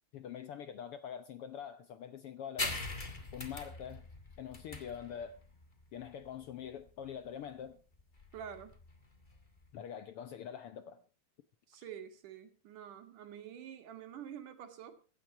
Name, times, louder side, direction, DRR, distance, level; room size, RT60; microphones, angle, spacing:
voice 1, 0.1-2.8 3.3-4.1 4.4-5.4 5.9-7.8 9.7-11.0, left 8 dB, 80° left, 1.2 m, -44 dB
sound 1, 2.6-9.7, left 2 dB, 20° left, 1.4 m, -43 dB
voice 2, 8.3-8.7 11.7-15.0, right 9 dB, 75° right, 3.2 m, -47 dB
16.0 x 11.5 x 4.5 m
omnidirectional pair, 3.7 m